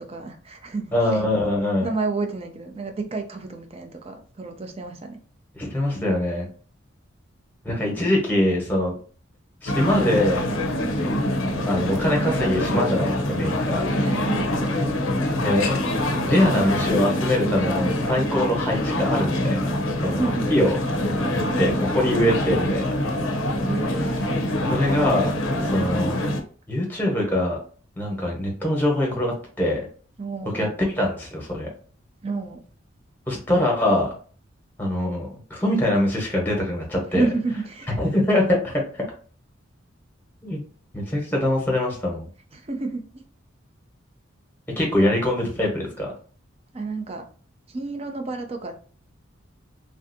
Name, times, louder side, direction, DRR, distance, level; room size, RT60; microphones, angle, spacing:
voice 1, 0.0-1.2 1.8-5.2 14.0-14.5 20.0-20.4 23.7-24.5 30.2-30.8 32.2-32.6 37.1-37.9 42.5-43.0 46.7-47.2 47.7-48.7, right 3 dB, 30° right, 0.4 m, -30 dB
voice 2, 0.9-1.9 5.6-6.5 7.6-8.9 9.6-10.4 11.7-13.8 15.3-15.8 16.3-19.7 20.0-20.2 20.5-20.8 21.6-22.8 24.7-26.2 26.7-27.6 28.0-29.8 30.5-30.7 30.9-31.7 33.3-34.1 34.8-37.2 38.0-39.0 40.4-40.6 40.9-42.3 44.8-46.1, left 1 dB, 10° left, 0.9 m, -23 dB
sound 1, 9.7-26.4, left 1 dB, 85° left, 0.5 m, -24 dB
3.3 x 2.6 x 2.6 m
head